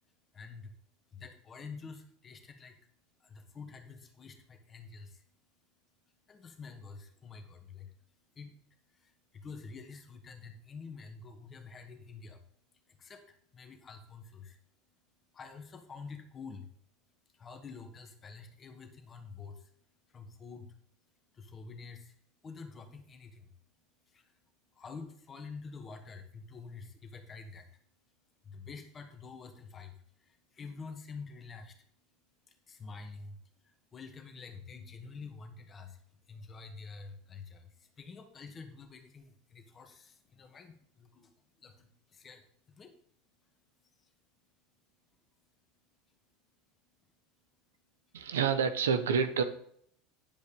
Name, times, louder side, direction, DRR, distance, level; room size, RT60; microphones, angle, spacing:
voice 1, 0.0-48.3, left 4 dB, 30° left, 5 dB, 2.0 m, -49 dB
voice 2, 48.1-49.4, right 6 dB, 85° right, 11 dB, 1.0 m, -28 dB
10.5 x 5.3 x 5.2 m, 0.65 s
hypercardioid pair, 85°, 0 cm